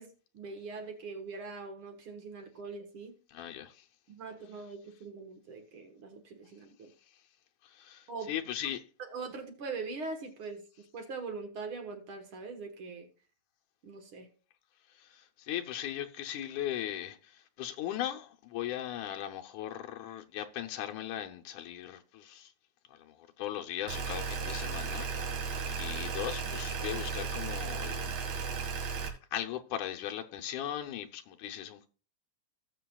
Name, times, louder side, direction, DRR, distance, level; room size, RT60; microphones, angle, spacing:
voice 1, 0.0-3.2 4.1-6.9 8.1-8.3 9.0-13.1 13.8-14.3, right 4 dB, 55° right, 2.0 m, -42 dB
voice 2, 3.3-3.9 7.6-8.8 14.9-22.5 22.9-25.3 25.6-28.6 29.3-31.9, left 11 dB, 85° left, 2.3 m, -38 dB
sound 1, 23.9-29.1, right 5 dB, 75° right, 3.1 m, -35 dB
17.5 x 7.3 x 2.3 m
omnidirectional pair, 3.4 m